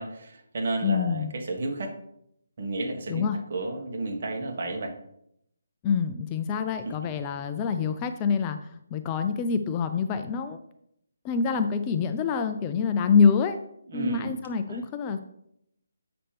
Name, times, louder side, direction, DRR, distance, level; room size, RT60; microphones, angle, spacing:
voice 1, 0.0-1.9 2.6-3.2 3.5-4.9 13.9-14.3 14.7-14.8, right 2 dB, 50° right, 2 dB, 1.6 m, -31 dB
voice 2, 0.8-1.3 3.1-3.4 5.8-10.6 11.2-13.6 13.9-15.2, left 6 dB, 20° left, 8 dB, 0.4 m, -26 dB
7.7 x 5.9 x 3.4 m, 0.74 s
hypercardioid pair, 165°, 0 cm